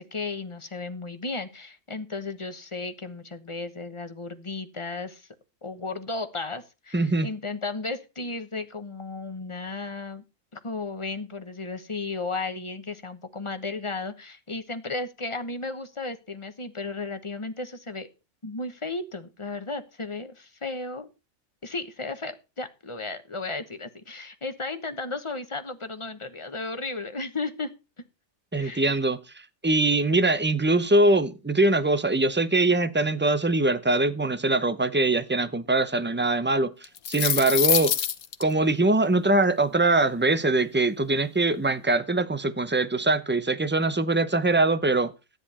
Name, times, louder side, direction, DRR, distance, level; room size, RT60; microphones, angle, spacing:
voice 1, 0.0-5.3 5.6-10.2 10.5-18.1 18.4-21.1 21.6-27.7 28.5-28.9, left 3 dB, 25° left, 1.1 m, -34 dB
voice 2, 6.9-7.3 28.5-29.2 29.6-36.7 37.1-37.9 38.4-45.1, right 2 dB, 10° right, 0.5 m, -22 dB
sound 1, 36.8-38.4, left 9 dB, 85° left, 1.4 m, -24 dB
13.5 x 10.0 x 4.3 m
omnidirectional pair, 1.5 m